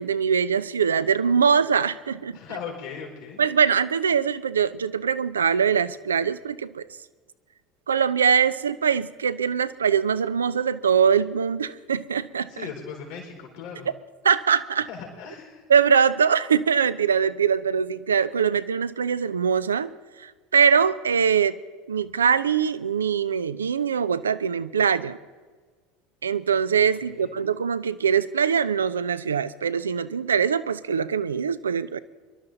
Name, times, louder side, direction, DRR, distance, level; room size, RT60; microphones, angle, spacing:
voice 1, 0.0-2.4 3.4-6.9 7.9-12.5 14.2-14.9 15.7-19.9 20.2-21.6 21.9-25.2 26.2-32.0, right 7 dB, 85° right, 15 dB, 0.5 m, -22 dB
voice 2, 2.3-3.4 12.5-13.9 14.9-15.7 26.8-27.3, left 6 dB, 70° left, 1 dB, 4.4 m, -38 dB
24.0 x 12.0 x 3.9 m, 1.4 s
hypercardioid pair, 75°, 0 cm